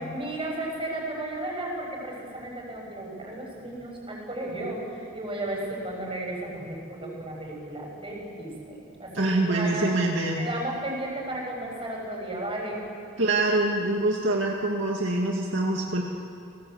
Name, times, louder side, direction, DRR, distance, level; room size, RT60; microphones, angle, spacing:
voice 1, 0.1-9.9 10.4-12.8, right 1 dB, 25° right, -1 dB, 7.3 m, -34 dB
voice 2, 9.1-10.4 13.2-16.0, right 2 dB, 65° right, -1 dB, 2.4 m, -25 dB
30.0 x 20.5 x 8.1 m, 2.4 s
head